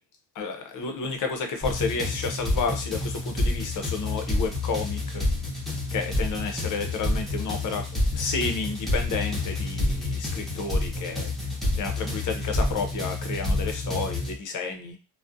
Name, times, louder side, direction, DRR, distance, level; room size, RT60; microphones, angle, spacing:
voice 1, 0.4-5.3 5.9-7.9 8.1-11.5 11.8-15.0, left 4 dB, 45° left, 5 dB, 0.5 m, -31 dB
sound 1, 1.6-14.3, left 2 dB, ahead, 0.6 m, -28 dB
2.4 x 2.1 x 2.5 m, 0.32 s
cardioid pair, 135°, 47 cm